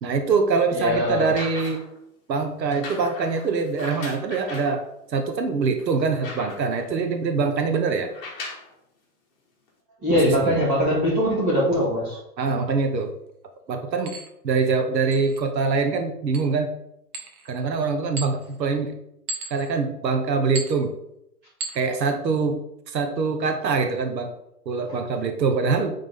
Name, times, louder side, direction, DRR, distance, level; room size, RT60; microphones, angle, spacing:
voice 1, 0.0-1.8 2.3-4.8 5.1-8.1 10.4-10.5 12.4-13.1 13.7-14.1 14.4-16.7 17.4-18.9 19.5-20.9 21.7-24.3 24.6-25.9, right 4 dB, 90° right, 6 dB, 1.3 m, -24 dB
voice 2, 0.7-1.3 10.0-12.2 24.9-25.0, equal, 20° right, -6 dB, 2.1 m, -22 dB
sound 1, 1.2-2.0 2.6-4.8 5.4-5.5 5.8-6.8 8.0-8.7 9.7-9.8, left 3 dB, 35° left, 1.9 m, -38 dB
sound 2, 12.5-12.6 14.1-14.3 15.1-15.4 16.3-16.5 17.1-17.6 18.2-18.6 19.3-19.8 20.5-20.8 21.6-21.9, right 3 dB, 60° right, 1.3 m, -35 dB
9.2 x 3.7 x 3.7 m, 0.79 s
hypercardioid pair, 170°, 49 cm